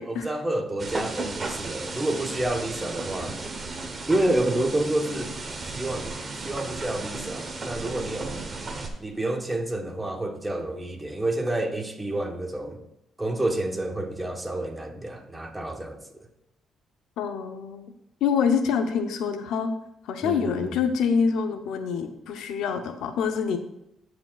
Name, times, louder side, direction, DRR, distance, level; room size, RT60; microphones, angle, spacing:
voice 1, 0.0-3.4 4.1-5.3 5.6-8.4 9.0-12.8 13.2-16.0 20.2-20.8, right 1 dB, 15° right, 3 dB, 1.1 m, -29 dB
sound 1, 0.8-8.9, right 3 dB, 35° right, 1.0 m, -34 dB
voice 2, 17.2-17.9 18.2-19.7 20.0-23.6, left 6 dB, 85° left, 7 dB, 0.7 m, -26 dB
13.5 x 4.8 x 2.4 m, 0.83 s
cardioid pair, 90°, 0 cm